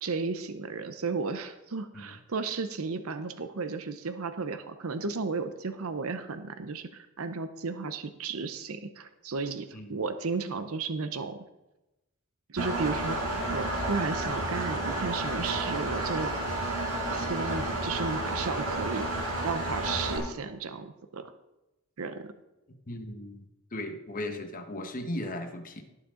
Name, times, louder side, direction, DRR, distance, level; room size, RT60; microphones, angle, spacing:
voice 1, 0.0-11.4 12.5-13.2 13.5-16.3 17.1-19.1 19.4-21.3 22.0-22.3, right 4 dB, 75° right, 9 dB, 0.7 m, -34 dB
Engine, 12.6-20.2, right 2 dB, 90° right, 4.8 m, -31 dB
voice 2, 22.9-23.4 23.7-25.8, left 1 dB, 40° left, 6 dB, 1.2 m, -37 dB
18.5 x 6.5 x 3.8 m, 0.96 s
head